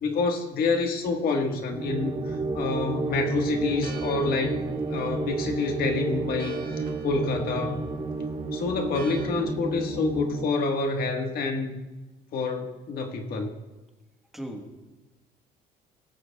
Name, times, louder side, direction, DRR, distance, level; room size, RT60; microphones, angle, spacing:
voice 1, 0.0-4.6 4.9-6.6 7.0-7.8 8.5-11.8 12.3-13.5, left 3 dB, 60° left, 3 dB, 1.5 m, -27 dB
sound 1, 1.7-10.5, right 3 dB, 35° right, 1.2 m, -31 dB
Church bell, 2.9-9.3, right 6 dB, 60° right, 1.7 m, -47 dB
voice 2, 14.3-15.0, right 1 dB, ahead, 3 dB, 1.3 m, -40 dB
17.5 x 13.5 x 2.3 m, 1.1 s
cardioid pair, 110°, 17 cm